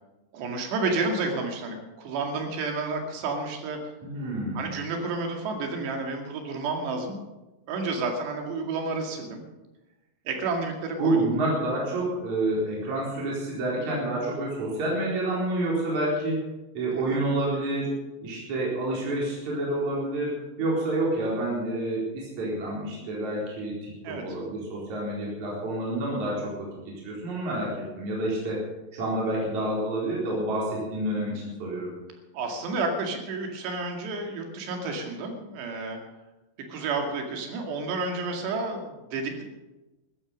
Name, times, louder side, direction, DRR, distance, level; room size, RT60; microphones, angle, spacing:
voice 1, 0.3-3.8 4.6-7.2 7.7-9.4 10.3-11.2 17.0-17.2 24.0-24.2 32.3-36.0 36.7-39.4, right 3 dB, 75° right, 3 dB, 4.3 m, -30 dB
voice 2, 4.0-4.7 11.0-16.4 16.7-28.6 28.9-31.9, right 1 dB, 45° right, -4 dB, 5.3 m, -28 dB
14.5 x 14.0 x 6.3 m, 1.1 s
omnidirectional pair, 5.1 m